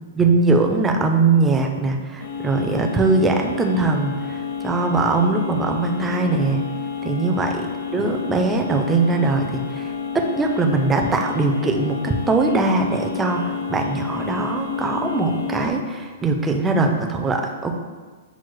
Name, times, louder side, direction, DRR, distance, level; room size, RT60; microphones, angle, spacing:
voice 1, 0.1-6.6 7.0-17.8, right 3 dB, 10° right, 3 dB, 0.3 m, -21 dB
sound 1, 2.2-15.7, left 6 dB, 70° left, 0.5 m, -30 dB
6.0 x 2.0 x 3.1 m, 1.4 s
hypercardioid pair, 155°, 0 cm